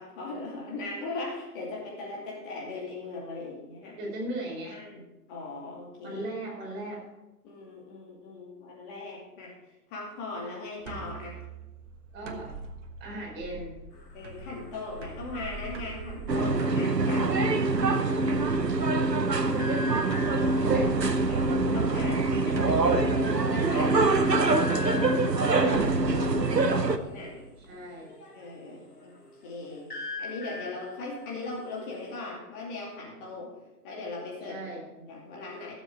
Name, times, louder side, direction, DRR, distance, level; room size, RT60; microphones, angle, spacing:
voice 1, 0.0-4.0 4.7-5.0 5.3-6.2 7.4-11.4 14.1-17.8 21.3-25.2 25.5-26.5 27.0-27.5 28.3-29.1 29.4-33.6 33.8-34.6 35.0-35.7, left 3 dB, 30° left, -3 dB, 2.5 m, -39 dB
voice 2, 4.0-4.8 6.0-7.0 12.1-12.5 13.0-13.8 19.9-20.9 27.7-28.1 34.5-34.8, right 1 dB, 20° right, -3 dB, 4.5 m, -37 dB
sound 1, 10.8-27.7, right 5 dB, 50° right, 1.5 m, -43 dB
sound 2, 13.9-18.3 19.6-20.8 22.0-22.1 22.4-22.6 23.0-23.1 24.2-25.9 28.0-32.1, left 2 dB, 65° left, 2.8 m, -42 dB
sound 3, 16.3-27.0, right 3 dB, 85° right, 1.0 m, -24 dB
16.0 x 7.3 x 4.6 m, 1.0 s
figure-of-eight pair, 120°, 48 cm